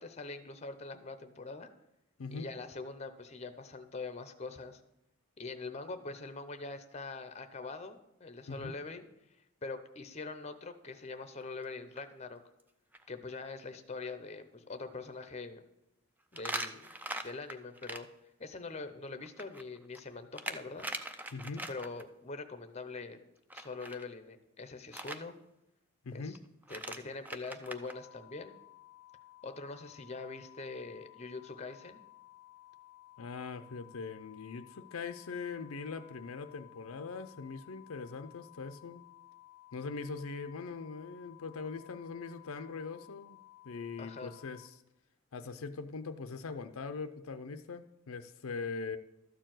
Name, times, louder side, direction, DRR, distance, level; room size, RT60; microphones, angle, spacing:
voice 1, 0.0-1.7 2.3-4.8 5.4-9.0 9.6-12.4 13.1-15.6 16.3-16.9 17.2-18.1 18.4-20.9 21.7-23.2 23.5-25.3 26.1-26.4 26.7-28.5 29.4-32.0 44.0-44.3, left 3 dB, 30° left, 9 dB, 0.7 m, -43 dB
sound 1, 11.4-11.6 12.0-12.1 12.6-12.7 12.9-13.0 16.3-18.0 19.2-22.0 23.5-24.0 24.9-25.2 26.3-26.4 26.6-27.9, right 1 dB, 10° right, 0.4 m, -41 dB
voice 2, 21.3-21.7 26.0-26.4 33.2-39.0 39.7-43.4 43.6-44.8 45.3-49.0, left 4 dB, 70° left, 9 dB, 0.5 m, -41 dB
sound 2, 27.8-44.7, left 16 dB, 45° right, 1.4 m, -57 dB
12.5 x 4.6 x 7.6 m, 0.87 s
head